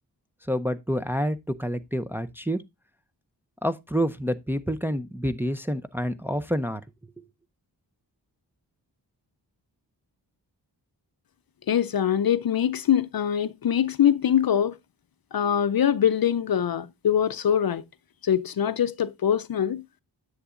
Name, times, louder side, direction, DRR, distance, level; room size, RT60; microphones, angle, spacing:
voice 1, 0.5-2.6 3.6-6.8 7.2-7.3, equal, 5° right, 0.5 m, -28 dB
voice 2, 11.7-14.7 15.3-17.8 18.2-19.8, left 9 dB, 55° left, 0.5 m, -23 dB
9.8 x 7.9 x 2.4 m
wide cardioid pair, 95°, 42 cm